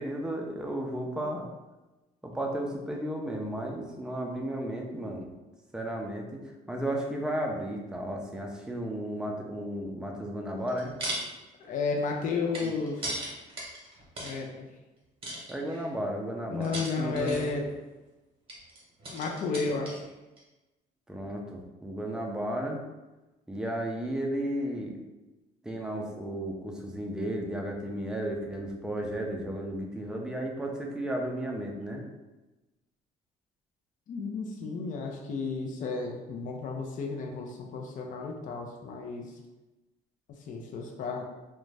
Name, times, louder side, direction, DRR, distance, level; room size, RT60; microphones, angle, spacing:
voice 1, 0.0-1.5 2.2-5.3 5.7-6.4 6.7-10.9 12.6-12.7 15.5-17.5 21.1-22.8 23.5-25.0 25.6-32.0, right 1 dB, 5° right, 0 dB, 0.4 m, -34 dB
sound 1, 10.6-11.3 11.6-14.4 15.2-15.9 16.6-17.7 18.5-20.1 20.4-20.5, right 1 dB, 35° right, 1.0 m, -38 dB
voice 2, 11.6-13.2 14.2-14.7 16.5-17.7 19.1-20.0 34.1-39.3 40.5-41.2, left 4 dB, 50° left, 1 dB, 0.4 m, -33 dB
2.5 x 2.2 x 3.1 m, 1.1 s
cardioid pair, 110°, 17 cm